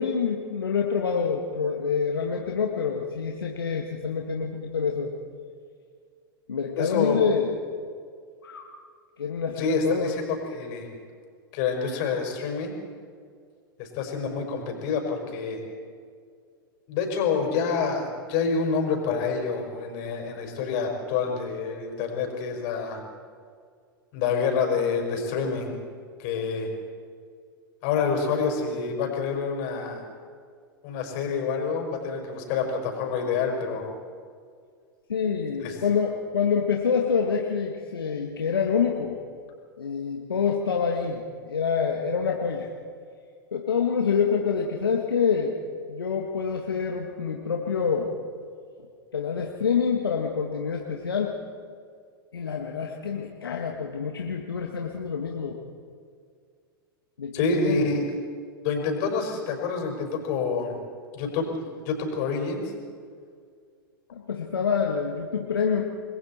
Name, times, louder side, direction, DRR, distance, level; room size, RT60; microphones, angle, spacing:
voice 1, 0.0-5.1 6.5-7.6 8.4-8.7 9.2-10.1 35.1-39.2 39.8-42.7 43.5-45.5 45.9-48.2 49.1-51.4 52.3-55.6 57.2-57.9 64.2-65.8, left 6 dB, 80° left, 1 dB, 1.8 m, -26 dB
voice 2, 6.8-7.2 9.6-10.9 11.5-12.7 13.8-15.6 16.9-23.0 24.1-25.7 26.2-26.7 27.8-30.0 30.8-33.8 35.6-35.8 57.3-58.1 58.6-60.8 61.1-62.7, left 5 dB, 50° left, 2 dB, 5.6 m, -27 dB
28.5 x 21.0 x 4.4 m, 2.1 s
figure-of-eight pair, 95°, 12 cm